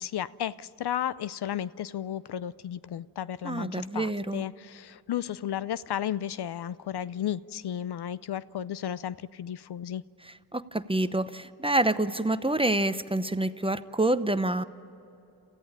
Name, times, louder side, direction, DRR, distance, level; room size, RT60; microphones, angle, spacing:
voice 1, 0.0-10.0, left 10 dB, 65° left, 17 dB, 0.6 m, -33 dB
voice 2, 3.4-4.5 10.5-14.6, right 2 dB, 15° right, 13 dB, 0.8 m, -27 dB
28.0 x 14.5 x 9.9 m, 2.8 s
cardioid pair, 50°, 43 cm